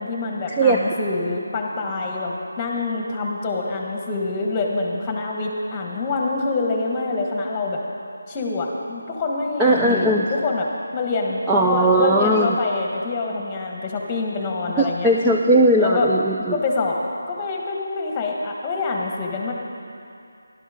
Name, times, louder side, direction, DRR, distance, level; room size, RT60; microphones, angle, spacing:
voice 1, 0.0-7.8 8.3-15.1 15.8-16.1 16.5-17.0 17.3-19.5, left 3 dB, 15° left, 0 dB, 1.4 m, -26 dB
voice 2, 9.6-10.3 11.5-12.6 14.8-16.6, right 1 dB, 5° right, -3 dB, 0.4 m, -18 dB
15.0 x 12.0 x 5.0 m, 2.5 s
figure-of-eight pair, 170°, 0 cm